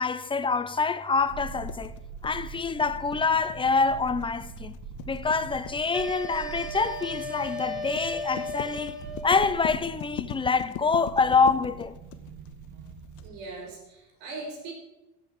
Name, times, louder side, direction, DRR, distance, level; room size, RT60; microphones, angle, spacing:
voice 1, 0.0-4.8 5.1-9.0 9.2-12.0, left 4 dB, 15° left, 0.6 m, -26 dB
sound 1, 1.2-13.6 13.8-13.9, right 5 dB, 60° right, 1.5 m, -43 dB
sound 2, 1.7-13.2, left 12 dB, 60° left, 1.0 m, -40 dB
sound 3, 5.9-9.4, left 1 dB, ahead, 1.9 m, -36 dB
voice 2, 13.2-14.7, right 3 dB, 75° right, 3.4 m, -40 dB
14.5 x 5.7 x 6.5 m
supercardioid pair, 95°, 34 cm